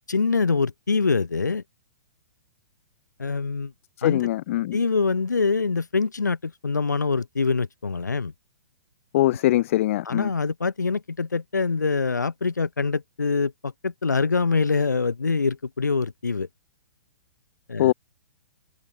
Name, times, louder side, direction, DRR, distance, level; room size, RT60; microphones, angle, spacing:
voice 1, 0.1-1.6 3.2-3.7 4.0-4.2 4.7-8.3 10.0-16.5 17.7-17.9, left 4 dB, 80° left, 2.9 m, -24 dB
voice 2, 4.0-4.8 9.1-10.3 17.8-17.9, left 15 dB, 50° left, 3.8 m, -22 dB
figure-of-eight pair, 115°, 9 cm